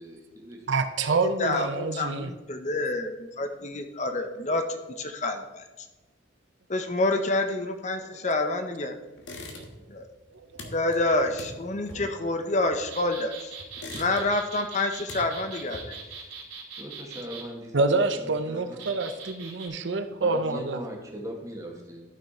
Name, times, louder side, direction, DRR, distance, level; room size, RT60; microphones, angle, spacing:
voice 1, 0.0-0.7 11.9-12.2 16.1-16.3 16.8-18.9 20.2-22.0, right 1 dB, 15° right, 0 dB, 1.7 m, -40 dB
voice 2, 0.7-2.3 9.6-9.7 10.3-10.7 17.7-20.8, right 3 dB, 70° right, 8 dB, 0.7 m, -27 dB
voice 3, 1.4-5.9 6.7-8.9 9.9-10.1 10.7-13.6 13.9-16.0, left 2 dB, 35° left, 7 dB, 0.7 m, -28 dB
sound 1, 9.2-10.0 10.2-13.2 13.6-14.5 14.8-16.2, left 2 dB, 75° left, 1.7 m, -43 dB
sound 2, 12.9-17.4 18.8-19.7, right 5 dB, 55° right, 2.7 m, -41 dB
13.0 x 6.0 x 4.3 m, 1.2 s
head